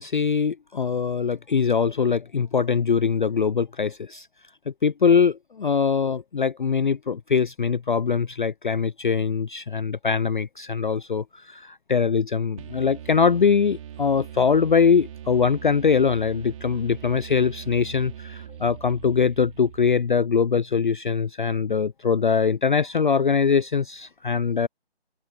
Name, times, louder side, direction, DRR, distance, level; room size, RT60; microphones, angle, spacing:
voice 1, 0.0-4.3 4.8-24.7, left 6 dB, 50° left, 0.4 m, -22 dB
sound 1, 12.6-20.3, right 10 dB, 30° right, 5.7 m, -41 dB
open air
figure-of-eight pair, 150°, 33 cm